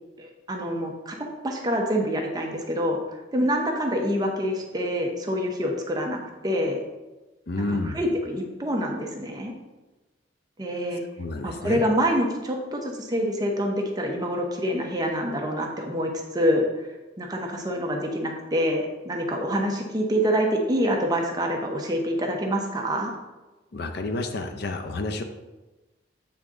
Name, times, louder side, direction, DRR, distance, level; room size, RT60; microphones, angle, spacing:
voice 1, 0.2-1.2 1.4-3.0 3.3-6.8 7.6-9.5 10.6-11.0 11.4-16.9 17.2-23.1, equal, 20° right, 1 dB, 0.8 m, -26 dB
voice 2, 7.5-8.0 11.2-11.8 23.7-25.2, left 2 dB, 60° left, 6 dB, 0.5 m, -30 dB
8.0 x 3.6 x 3.7 m, 1.1 s
head